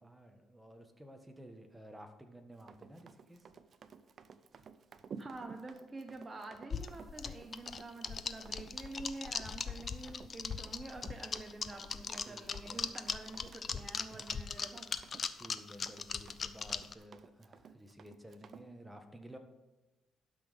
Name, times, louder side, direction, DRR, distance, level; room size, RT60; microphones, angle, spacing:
voice 1, 0.0-3.5 12.3-12.9 15.3-19.4, equal, 10° right, 4 dB, 1.5 m, -53 dB
Run, 2.6-18.7, right 6 dB, 50° right, 0.6 m, -55 dB
voice 2, 5.2-14.9, right 2 dB, 25° right, 3 dB, 1.0 m, -47 dB
sound 1, 6.7-16.9, left 6 dB, 45° left, 0.6 m, -39 dB
11.5 x 6.1 x 5.2 m, 1.1 s
cardioid pair, 90°, 0 cm